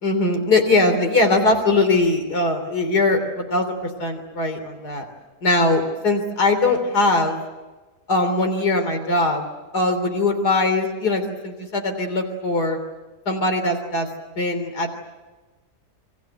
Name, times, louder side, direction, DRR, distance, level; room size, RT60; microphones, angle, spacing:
voice 1, 0.0-5.1 5.4-7.4 8.1-9.4 9.7-12.8 13.3-14.1 14.4-14.9, left 2 dB, 70° left, 5 dB, 3.8 m, -21 dB
30.0 x 23.0 x 8.0 m, 1.2 s
omnidirectional pair, 1.8 m